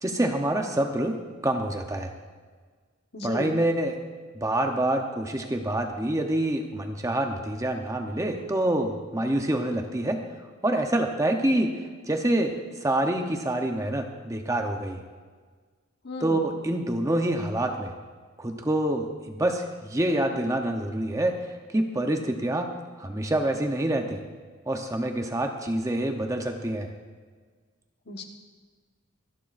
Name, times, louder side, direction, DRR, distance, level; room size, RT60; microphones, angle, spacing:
voice 1, 0.0-2.1 3.2-4.0 4.3-10.2 10.6-11.7 12.1-15.0 16.2-17.9 18.4-22.7 23.0-24.2 24.7-26.9, right 1 dB, 15° right, 4 dB, 0.8 m, -26 dB
voice 2, 3.1-3.6 16.0-16.5 28.0-28.2, left 1 dB, 55° left, 3 dB, 1.4 m, -35 dB
25.5 x 11.0 x 2.6 m, 1.5 s
head